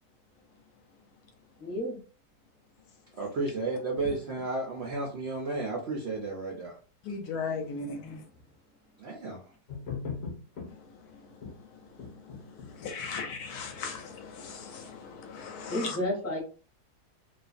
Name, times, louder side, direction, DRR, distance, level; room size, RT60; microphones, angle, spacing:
voice 1, 1.6-2.0 7.6-8.2 15.7-16.4, left 1 dB, 15° left, -3 dB, 0.7 m, -33 dB
voice 2, 3.1-6.8 9.0-9.4, right 3 dB, 70° right, -1 dB, 0.6 m, -33 dB
voice 3, 7.0-8.0 12.8-16.0, left 5 dB, 75° left, 4 dB, 1.1 m, -37 dB
sound 1, 9.7-10.7 11.4-11.5 12.0-14.1, left 5 dB, 60° left, 0.7 m, -40 dB
2.4 x 2.4 x 2.4 m, 0.37 s
omnidirectional pair, 1.7 m